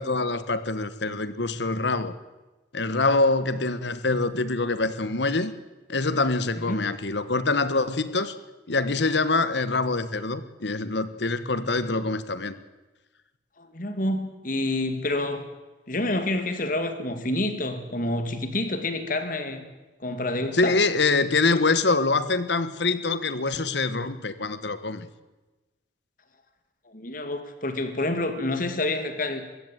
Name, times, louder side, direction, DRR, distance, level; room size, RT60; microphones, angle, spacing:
voice 1, 0.0-2.1 2.7-5.5 5.9-8.3 8.7-12.5 20.5-25.1, left 3 dB, 70° left, 13 dB, 1.4 m, -25 dB
voice 2, 13.6-15.5 15.9-19.7 20.0-20.8 26.9-29.5, left 2 dB, 45° left, 8 dB, 2.4 m, -28 dB
21.5 x 15.5 x 9.3 m, 1.1 s
head